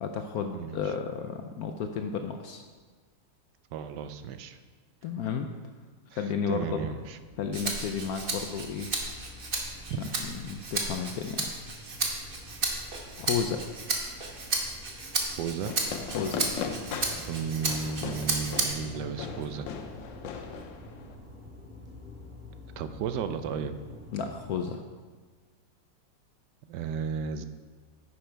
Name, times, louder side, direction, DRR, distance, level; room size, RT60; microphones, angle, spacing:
voice 1, 0.0-2.6 5.0-5.5 6.1-6.8 7.4-8.9 9.9-11.5 13.2-13.6 16.1-16.5 24.1-24.8, left 6 dB, 70° left, 6 dB, 0.9 m, -32 dB
voice 2, 0.5-0.9 3.7-4.6 6.1-7.2 9.9-10.0 15.4-15.7 17.3-19.7 22.8-23.7 26.7-27.5, right 7 dB, 75° right, 10 dB, 1.1 m, -34 dB
sound 1, 6.5-24.5, left 1 dB, 10° right, 2.1 m, -48 dB
Rattle (instrument), 7.5-19.0 19.4-20.6, right 3 dB, 35° right, 1.1 m, -33 dB
Fireworks, 15.6-21.1, left 6 dB, 85° left, 1.5 m, -38 dB
10.5 x 6.7 x 4.5 m, 1.4 s
omnidirectional pair, 2.0 m